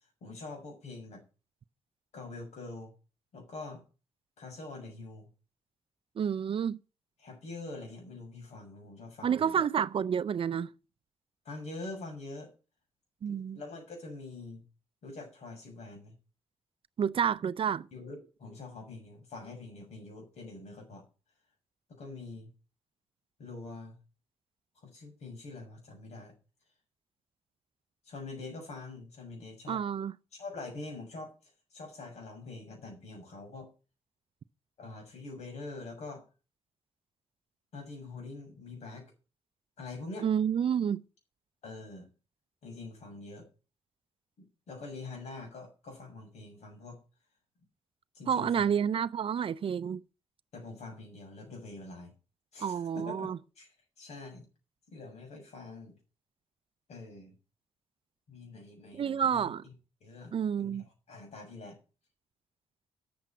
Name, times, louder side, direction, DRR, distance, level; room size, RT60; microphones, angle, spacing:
voice 1, 0.2-1.2 2.1-2.9 3.3-3.8 4.4-5.3 7.2-9.6 11.4-12.5 13.3-14.6 15.0-16.1 17.9-21.0 22.0-22.5 23.4-24.0 24.8-26.3 28.0-29.8 30.4-31.3 31.7-33.7 34.8-36.2 37.7-39.1 39.8-40.3 41.6-42.1 42.6-43.5 44.4-47.0 48.1-48.7 50.5-52.1 52.5-53.3 53.6-53.7 54.0-54.5 54.9-56.0 56.9-57.3 58.3-59.7 60.0-61.8, left 3 dB, 70° left, 6.7 m, -45 dB
voice 2, 6.2-6.8 9.2-10.7 13.2-13.6 17.0-17.9 29.7-30.1 40.2-41.0 48.3-50.0 52.6-53.4 58.9-59.6 60.3-60.8, right 8 dB, 50° right, 0.5 m, -29 dB
9.4 x 7.5 x 8.8 m
cardioid pair, 90°, 12 cm